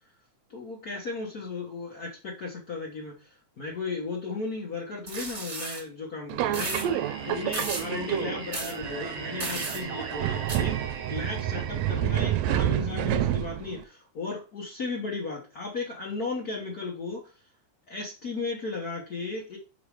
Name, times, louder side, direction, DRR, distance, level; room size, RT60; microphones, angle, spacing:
voice 1, 0.5-10.8 11.1-17.2 17.9-19.6, left 3 dB, 85° left, -1 dB, 0.8 m, -35 dB
sound 1, 5.1-5.8 6.5-6.9 7.5-7.9 8.5-8.7 9.4-9.8 10.5-10.6, right 2 dB, 30° right, 1.6 m, -34 dB
Subway metro underground, 6.3-13.8, right 11 dB, 75° right, 1.7 m, -29 dB
Singing, 6.8-12.8, right 5 dB, 60° right, 1.7 m, -40 dB
5.2 x 4.8 x 4.8 m, 0.34 s
omnidirectional pair, 3.4 m